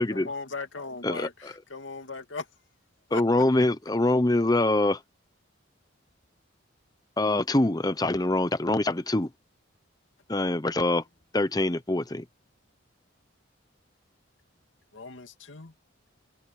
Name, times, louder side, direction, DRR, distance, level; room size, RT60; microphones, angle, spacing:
voice 1, 0.0-2.5 3.1-3.2 14.9-15.7, left 4 dB, 80° left, 2.3 m, -38 dB
voice 2, 3.1-5.0 7.2-9.3 10.3-11.0 11.3-12.2, left 2 dB, 20° left, 0.9 m, -24 dB
voice 3, 12.5-13.2 14.4-15.0 15.5-16.2, left 1 dB, 45° left, 7.9 m, -77 dB
head